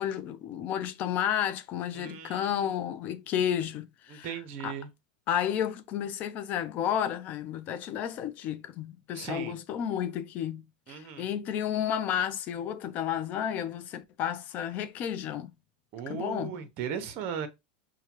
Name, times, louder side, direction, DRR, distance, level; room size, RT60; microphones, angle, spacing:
voice 1, 0.0-4.8 5.3-10.6 10.9-15.5 16.1-16.6, left 9 dB, 40° left, 0.5 m, -32 dB
voice 2, 2.0-2.7 4.1-4.9 9.1-9.6 10.9-11.2 15.9-17.5, right 7 dB, 50° right, 0.9 m, -37 dB
4.7 x 2.3 x 2.9 m
supercardioid pair, 130°, 4 cm